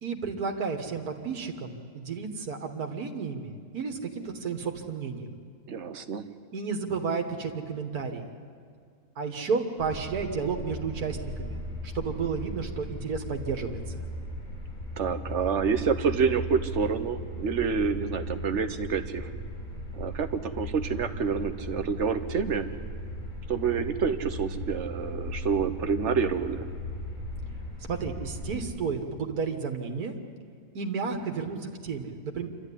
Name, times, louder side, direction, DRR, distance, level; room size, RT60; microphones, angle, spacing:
voice 1, 0.0-5.3 6.5-8.3 9.2-14.0 27.9-30.1 30.7-32.5, right 5 dB, 80° right, 3 dB, 2.0 m, -32 dB
voice 2, 5.7-6.3 15.0-19.3 19.9-22.7 23.5-26.7, right 6 dB, 55° right, 8 dB, 1.3 m, -28 dB
sound 1, 9.8-28.6, equal, 50° left, 5.5 m, -37 dB
27.0 x 13.0 x 9.9 m, 2.1 s
omnidirectional pair, 1.6 m